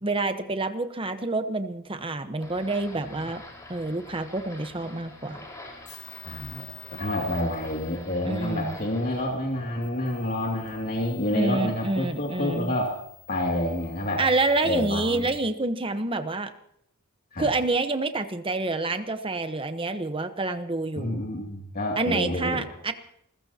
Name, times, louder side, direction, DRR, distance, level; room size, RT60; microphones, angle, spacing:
voice 1, 0.0-3.4 3.7-5.4 8.2-8.8 11.3-12.8 14.2-16.5 17.4-21.2 22.0-22.9, right 2 dB, 25° right, 9 dB, 1.0 m, -28 dB
sound 1, 2.4-9.3, left 1 dB, 15° left, 4.8 m, -46 dB
sound 2, 5.8-15.4, left 9 dB, 70° left, 5.7 m, -50 dB
voice 2, 6.2-6.7 6.9-13.0 13.3-14.2 14.6-15.3 17.3-17.5 20.9-22.6, left 1 dB, 45° left, -1 dB, 2.6 m, -28 dB
29.5 x 15.0 x 2.9 m, 0.73 s
head